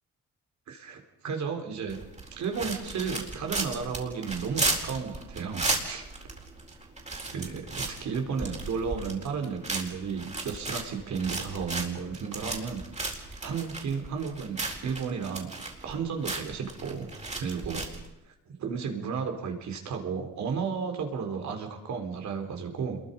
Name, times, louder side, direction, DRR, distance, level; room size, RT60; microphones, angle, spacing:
voice 1, 0.7-2.0 2.4-6.0 7.3-12.8 13.4-17.1 17.4-17.9 18.5-23.0, right 6 dB, 65° right, 4 dB, 4.0 m, -33 dB
sound 1, 1.9-18.1, right 2 dB, 25° right, 4.3 m, -35 dB
27.0 x 22.0 x 5.5 m, 0.89 s
cardioid pair, 90°, 30 cm